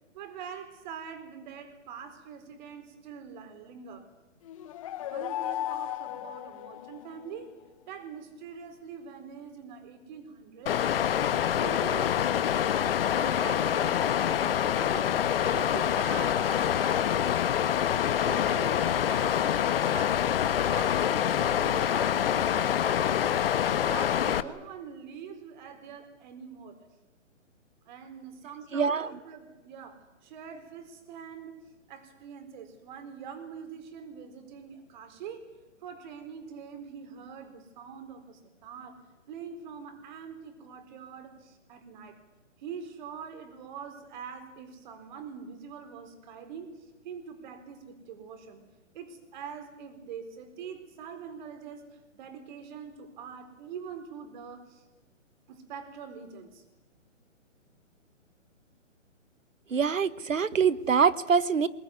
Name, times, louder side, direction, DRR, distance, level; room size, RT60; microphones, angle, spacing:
voice 1, 0.1-4.1 5.0-7.5 7.9-10.8 11.5-12.5 13.1-15.1 15.4-17.8 18.3-20.3 20.5-23.5 23.8-26.8 27.9-31.6 31.9-35.5 35.8-39.0 39.3-42.2 42.6-46.7 47.0-48.6 48.9-54.8 55.5-56.6, right 7 dB, 35° right, 9 dB, 4.3 m, -44 dB
sound 1, 4.5-7.4, left 13 dB, 25° left, 0.8 m, -36 dB
Water, 10.7-24.4, left 9 dB, 45° left, 1.3 m, -26 dB
voice 2, 28.7-29.1 59.7-61.7, right 6 dB, 85° right, 17 dB, 1.4 m, -24 dB
23.5 x 21.5 x 9.5 m, 1.1 s
hypercardioid pair, 145°, 38 cm